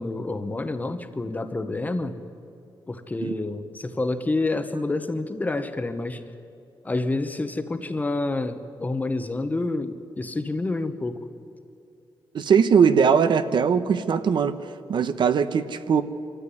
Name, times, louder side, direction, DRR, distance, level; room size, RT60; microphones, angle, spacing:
voice 1, 0.0-2.2 2.9-6.2 6.8-11.3, left 2 dB, 20° left, 9 dB, 1.0 m, -28 dB
voice 2, 12.3-14.6 14.9-16.0, right 6 dB, 60° right, 11 dB, 1.0 m, -20 dB
25.5 x 14.0 x 10.0 m, 2.6 s
wide cardioid pair, 160°, 9 cm